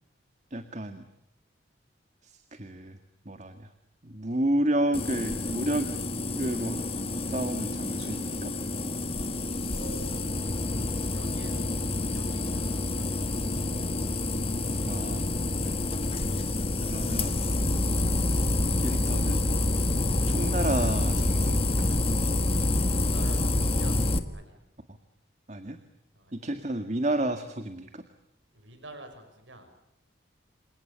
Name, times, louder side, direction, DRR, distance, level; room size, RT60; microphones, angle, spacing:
voice 1, 0.5-1.1 2.2-3.0 3.3-3.7 4.0-5.9 6.3-8.5 14.9-15.3 15.6-15.7 16.9-17.4 18.8-19.4 20.3-21.9 25.5-25.8 26.3-28.0, right 1 dB, 40° right, 8 dB, 1.9 m, -31 dB
sound 1, 4.9-24.2, left 2 dB, 30° left, 1.8 m, -28 dB
voice 2, 9.7-10.6 11.1-13.6 22.9-24.0 24.3-24.6 26.1-26.5 28.5-29.7, right 2 dB, 85° right, 7 dB, 6.2 m, -48 dB
29.0 x 26.5 x 6.9 m, 0.84 s
head